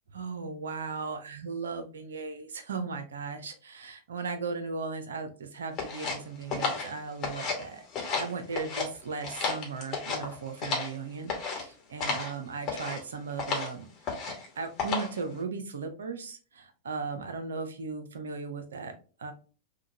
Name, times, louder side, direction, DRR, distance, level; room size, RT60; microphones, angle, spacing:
voice 1, 0.1-14.1 14.6-19.3, right 4 dB, 65° right, 8 dB, 0.5 m, -37 dB
sound 1, 5.8-7.7 7.9-8.9 9.2-11.0 11.3-11.6 12.0-12.3 12.6-13.0 13.4-13.7 14.0-14.5 14.8-15.2, left 4 dB, 35° left, 1.1 m, -32 dB
3.6 x 2.2 x 2.8 m, 0.37 s
figure-of-eight pair, 90°, 0 cm